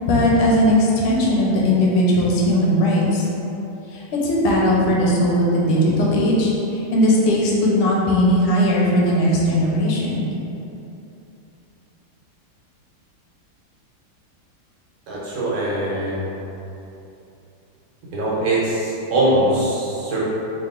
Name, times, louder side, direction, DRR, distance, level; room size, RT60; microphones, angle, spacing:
voice 1, 0.0-3.3 3.9-10.2, left 1 dB, 80° left, -4 dB, 1.5 m, -18 dB
voice 2, 15.1-16.3 18.1-20.2, right 1 dB, 70° right, -8 dB, 1.6 m, -22 dB
3.5 x 2.9 x 3.7 m, 2.9 s
omnidirectional pair, 2.4 m